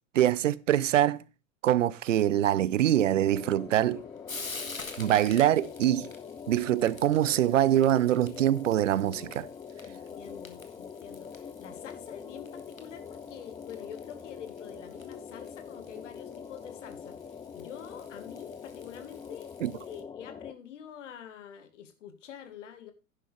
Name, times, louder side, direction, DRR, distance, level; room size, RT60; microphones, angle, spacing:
voice 1, 0.1-1.2 1.6-4.0 5.0-6.1 6.5-9.5 19.6-19.7, right 12 dB, 70° right, 0.7 m, -24 dB
Frying (food), 3.1-20.0, left 4 dB, 90° left, 1.6 m, -49 dB
sound 1, 3.1-20.5, left 6 dB, 10° left, 0.5 m, -44 dB
voice 2, 9.8-19.6 19.9-22.9, left 9 dB, 65° left, 2.1 m, -46 dB
11.0 x 9.8 x 3.4 m
figure-of-eight pair, 90°, 40 cm